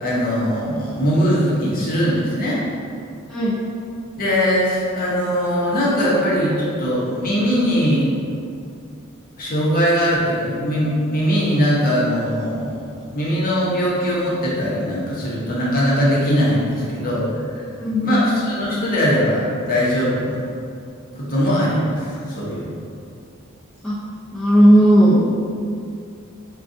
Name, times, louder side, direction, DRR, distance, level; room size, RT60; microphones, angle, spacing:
voice 1, 0.0-2.6 4.2-8.1 9.4-17.2 17.5-17.6 18.0-20.4 21.1-22.8, equal, 45° left, -6 dB, 0.8 m, -20 dB
voice 2, 17.8-18.3 23.8-23.9 24.3-25.4, equal, 5° left, -10 dB, 0.5 m, -15 dB
4.7 x 2.3 x 2.6 m, 2.4 s
head